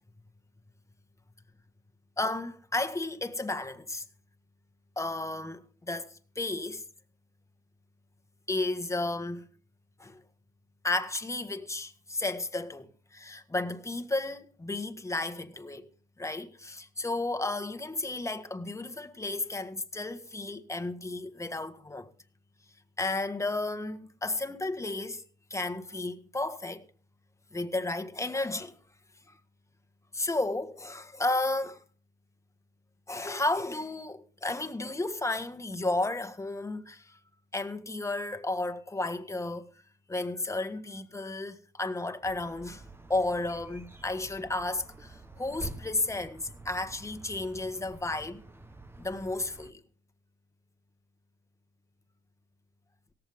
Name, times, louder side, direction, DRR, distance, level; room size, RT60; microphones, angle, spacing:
voice 1, 2.2-4.0 4.9-6.8 8.5-9.5 10.0-10.2 10.8-15.9 16.2-22.1 23.0-25.2 25.5-26.8 27.5-28.8 29.3-29.4 30.1-31.8 33.1-37.2 37.5-39.7 40.1-42.8 43.1-48.4 49.0-49.8, left 2 dB, 15° left, 1.7 m, -33 dB
sound 1, 42.2-49.7, right 2 dB, 10° right, 1.2 m, -47 dB
17.5 x 14.0 x 3.7 m
cardioid pair, 90°, 20 cm